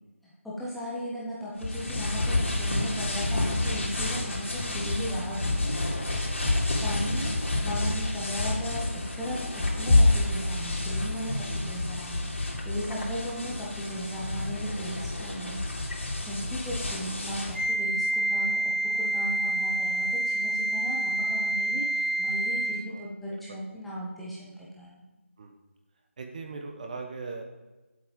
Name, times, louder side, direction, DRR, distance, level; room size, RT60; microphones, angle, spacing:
voice 1, 0.4-5.7 6.8-7.3 7.6-12.3 12.6-15.6 16.2-25.0, equal, ahead, -8 dB, 1.2 m, -36 dB
sound 1, 1.6-17.6, left 2 dB, 60° left, 3.6 m, -28 dB
voice 2, 5.7-6.5 11.4-11.6 12.9-13.0 16.3-16.6 22.9-23.6 25.4-25.5 26.2-27.4, right 4 dB, 35° right, 3 dB, 1.4 m, -42 dB
Wind instrument woodwind instrument, 17.5-22.9, right 1 dB, 60° right, 3.9 m, -28 dB
10.5 x 8.1 x 5.4 m, 1.1 s
figure-of-eight pair, 165°, 7 cm